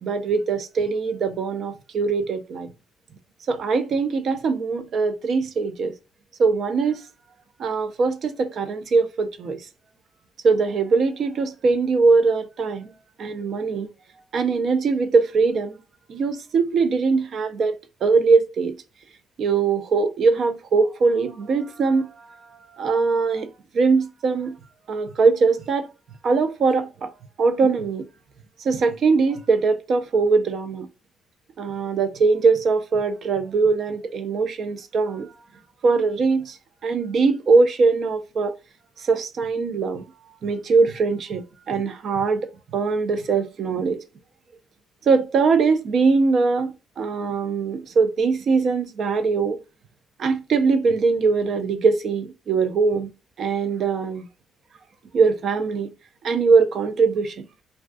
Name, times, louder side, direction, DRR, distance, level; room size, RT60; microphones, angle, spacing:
voice 1, 0.0-2.7 3.5-5.9 6.4-7.0 7.6-9.6 10.4-12.9 13.2-13.9 14.3-15.8 16.1-17.8 18.0-18.7 19.4-22.3 22.7-23.5 23.7-24.6 24.9-25.9 26.2-27.1 27.4-28.0 28.6-30.9 31.6-35.3 35.8-36.6 36.8-38.5 39.0-40.0 40.4-44.0 45.1-49.6 50.2-53.1 53.4-54.3 55.1-55.9 56.2-57.4, right 4 dB, 60° right, 0.4 m, -21 dB
2.4 x 2.3 x 2.4 m
cardioid pair, 90°, 0 cm